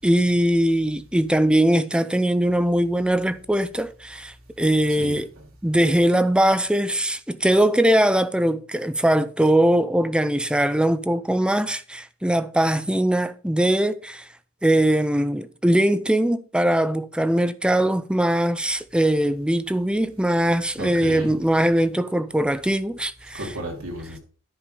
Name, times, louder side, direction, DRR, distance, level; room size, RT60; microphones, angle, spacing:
voice 1, 0.0-5.3 5.6-14.2 14.6-23.5, right 1 dB, 5° right, 0.5 m, -21 dB
voice 2, 20.8-21.3 23.3-24.2, right 1 dB, 75° right, 2.9 m, -33 dB
10.0 x 5.2 x 5.5 m
head